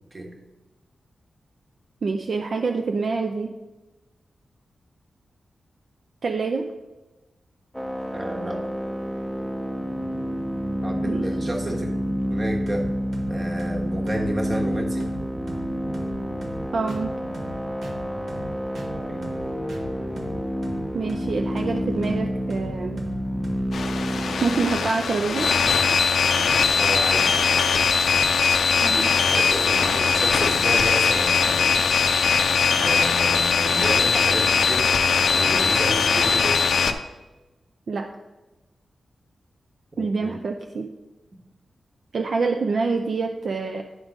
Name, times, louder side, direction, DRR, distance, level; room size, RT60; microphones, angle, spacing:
voice 1, 2.0-3.6 6.2-6.7 11.0-11.3 16.7-17.2 20.9-23.0 24.4-25.5 28.8-29.1 37.9-38.1 40.0-40.9 42.1-43.8, right 4 dB, 60° right, 4 dB, 0.4 m, -26 dB
sound 1, 7.7-24.7, equal, 5° right, 0.5 m, -29 dB
voice 2, 8.1-8.7 10.8-12.0 12.3-12.9 13.3-15.1 18.9-19.2 26.7-27.3 29.3-31.8 32.8-34.9 35.3-36.6 39.9-40.4 41.3-41.4, right 1 dB, 35° right, 1 dB, 1.3 m, -31 dB
sound 2, 9.8-23.8, right 1 dB, 80° right, 1.1 m, -39 dB
sound 3, 23.7-36.9, left 5 dB, 80° left, 0.5 m, -20 dB
9.9 x 3.7 x 5.0 m, 1.1 s
wide cardioid pair, 100°, 0 cm